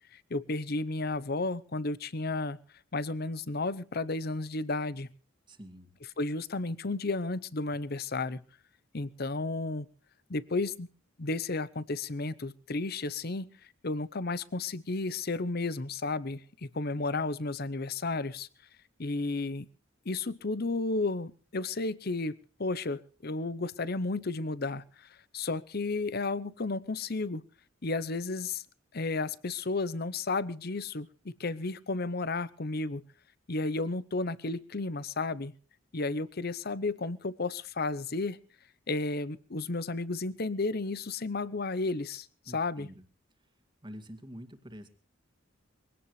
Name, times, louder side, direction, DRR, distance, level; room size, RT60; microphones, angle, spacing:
voice 1, 0.1-2.6 2.9-5.1 6.2-8.4 8.9-9.9 10.3-10.9 11.2-13.5 13.8-18.5 19.0-19.7 20.1-22.3 22.6-27.4 27.8-28.6 28.9-33.0 33.5-35.5 35.9-38.4 38.9-42.9, left 3 dB, 50° left, 18 dB, 0.8 m, -33 dB
voice 2, 5.5-5.9 42.5-43.0 43.8-44.9, equal, 25° right, 8 dB, 2.2 m, -46 dB
23.0 x 17.0 x 3.2 m, 0.41 s
head